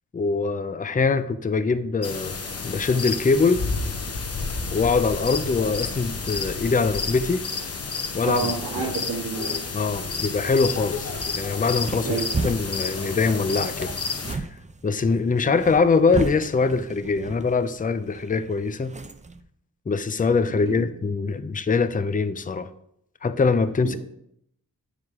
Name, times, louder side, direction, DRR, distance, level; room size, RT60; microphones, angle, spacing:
voice 1, 0.1-2.4 2.6-3.6 4.7-7.5 8.1-8.6 9.7-13.9 14.3-14.4 14.8-19.0 19.9-22.7 23.2-24.0, left 4 dB, 25° left, 11 dB, 0.5 m, -23 dB
sound 1, 2.0-14.3, left 4 dB, 45° left, 0.8 m, -30 dB
voice 2, 8.2-9.6 12.0-12.3 15.5-15.6 20.7-20.9 23.8-24.0, right 4 dB, 85° right, -9 dB, 2.4 m, -29 dB
sound 2, 11.1-19.4, right 3 dB, 20° right, 0.5 m, -35 dB
9.3 x 4.9 x 3.6 m, 0.73 s
wide cardioid pair, 70°, 36 cm